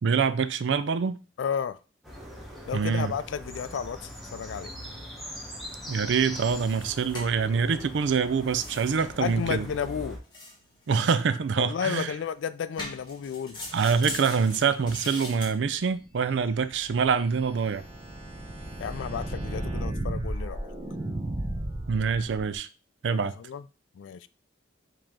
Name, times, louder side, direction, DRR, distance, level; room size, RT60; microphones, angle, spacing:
voice 1, 0.0-1.2 2.7-3.1 5.9-9.7 10.9-12.1 13.7-17.8 21.9-22.7 23.0-23.3, right 6 dB, 75° right, 0.4 m, -25 dB
voice 2, 1.4-1.8 2.7-4.7 9.2-10.2 11.6-13.6 18.8-20.6 23.1-23.6 24.0-24.3, left 7 dB, 80° left, 0.3 m, -32 dB
sound 1, 2.0-10.2, equal, ahead, 0.9 m, -41 dB
sound 2, 4.9-15.5, left 2 dB, 25° left, 1.2 m, -43 dB
sound 3, 16.2-22.6, right 1 dB, 30° right, 0.6 m, -34 dB
4.9 x 2.9 x 3.6 m
head